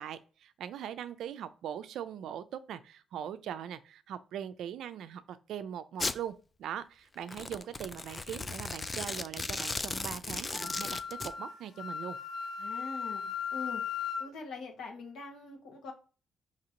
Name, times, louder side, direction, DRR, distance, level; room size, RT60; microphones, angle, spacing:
voice 1, 0.0-12.2, right 9 dB, 75° right, 0.4 m, -41 dB
Domestic sounds home sounds, 6.0-6.2 7.2-11.3, left 3 dB, 25° left, 0.3 m, -36 dB
Wind instrument woodwind instrument, 10.5-14.3, left 7 dB, 65° left, 1.1 m, -37 dB
voice 2, 12.6-13.8 14.2-15.9, left 4 dB, 80° left, 1.2 m, -43 dB
4.9 x 2.9 x 2.9 m
cardioid pair, 90°, 0 cm